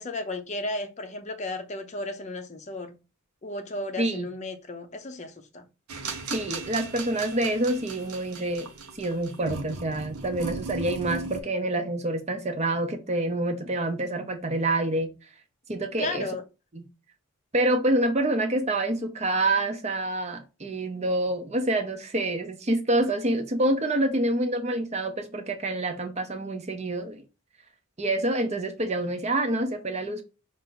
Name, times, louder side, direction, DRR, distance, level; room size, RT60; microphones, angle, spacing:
voice 1, 0.0-2.9 3.4-5.6 16.0-16.4, left 2 dB, 30° left, 0.6 m, -34 dB
voice 2, 4.0-4.3 6.3-8.7 9.0-15.1 15.7-16.3 16.7-16.8 17.5-27.2 28.0-30.2, right 1 dB, 30° right, 0.6 m, -27 dB
sound 1, 5.9-11.4, right 4 dB, 85° right, 0.8 m, -37 dB
5.5 x 2.5 x 3.8 m
head